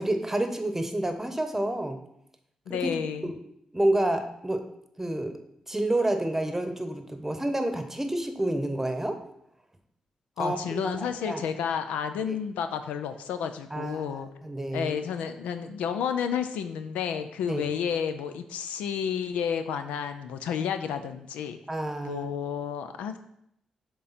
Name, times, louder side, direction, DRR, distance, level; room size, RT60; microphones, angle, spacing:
voice 1, 0.0-2.0 2.7-3.0 3.2-3.4 3.7-4.6 5.0-5.4 5.7-9.2 10.4-11.4 12.3-12.4 13.7-14.9 17.5-17.7 21.7-22.3, right 1 dB, 15° right, 7 dB, 1.0 m, -29 dB
voice 2, 2.7-3.3 10.4-14.3 14.7-21.6 22.0-23.2, left 7 dB, 85° left, 9 dB, 0.4 m, -31 dB
6.8 x 3.8 x 4.2 m, 0.76 s
supercardioid pair, 45°, 2 cm